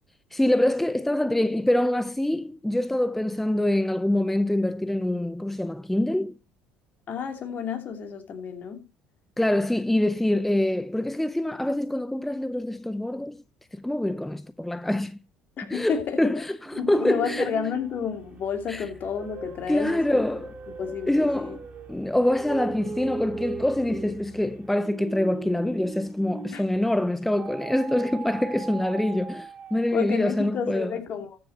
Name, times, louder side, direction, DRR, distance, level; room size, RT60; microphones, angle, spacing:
voice 1, 0.3-6.4 9.4-13.4 13.7-15.2 15.7-17.5 18.7-18.8 19.7-20.5 21.1-21.6 21.9-30.9, left 1 dB, 5° left, 0.5 m, -25 dB
voice 2, 7.1-8.8 15.6-16.4 16.8-20.2 20.8-21.6 26.5-26.6 29.9-31.4, left 7 dB, 50° left, 2.9 m, -31 dB
sound 1, 16.6-26.8 27.4-30.1, right 5 dB, 40° right, 3.1 m, -40 dB
14.0 x 6.5 x 4.1 m
supercardioid pair, 85°, 4 cm